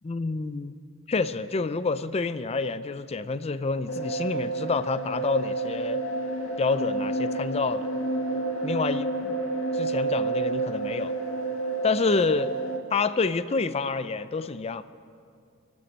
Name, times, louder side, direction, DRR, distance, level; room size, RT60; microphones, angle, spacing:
voice 1, 0.0-0.8 1.1-6.0 6.6-7.9 8.6-9.4 9.7-11.1 11.8-12.5 12.9-14.8, left 4 dB, 30° left, 13 dB, 0.5 m, -28 dB
sound 1, 3.9-12.8, right 2 dB, 85° left, 1.7 m, -29 dB
27.0 x 12.5 x 4.2 m, 2.4 s
head